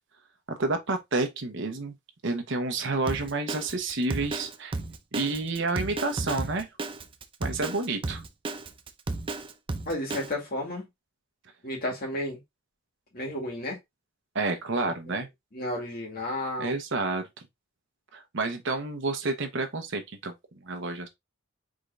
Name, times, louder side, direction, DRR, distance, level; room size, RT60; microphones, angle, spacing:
voice 1, 0.5-1.9 2.2-4.8 5.1-6.7 7.4-8.2 14.3-15.3 16.6-17.3 18.1-20.3 20.6-21.1, right 3 dB, 60° right, 0.9 m, -29 dB
Drum kit, 3.1-10.3, right 3 dB, 25° right, 0.4 m, -33 dB
voice 2, 9.9-10.8 11.6-12.4 13.1-13.8 15.1-15.2 15.5-16.8, left 1 dB, 45° left, 1.9 m, -32 dB
5.0 x 3.7 x 2.5 m
head